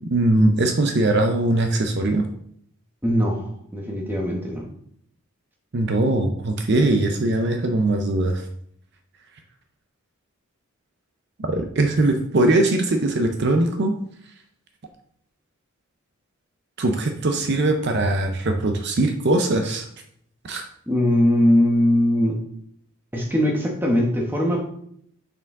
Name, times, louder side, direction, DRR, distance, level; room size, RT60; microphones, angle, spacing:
voice 1, 0.0-2.2 5.7-8.5 11.5-13.9 16.8-19.9 20.4-20.7, right 2 dB, 50° right, 5 dB, 0.5 m, -21 dB
voice 2, 3.0-4.7 20.9-22.4 23.1-24.7, left 1 dB, 10° right, -1 dB, 1.0 m, -20 dB
6.4 x 4.4 x 3.6 m, 0.68 s
head